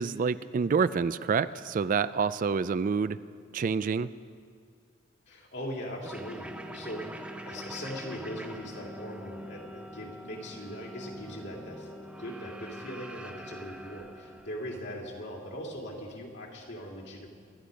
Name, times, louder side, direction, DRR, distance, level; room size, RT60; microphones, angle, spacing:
voice 1, 0.0-3.2 3.5-4.1, right 5 dB, 40° right, 15 dB, 0.3 m, -27 dB
voice 2, 5.3-11.9 12.2-17.3, equal, 60° left, -1 dB, 2.6 m, -40 dB
sound 1, 6.0-15.0, equal, 5° right, 0.9 m, -44 dB
25.5 x 10.0 x 5.1 m, 2.1 s
head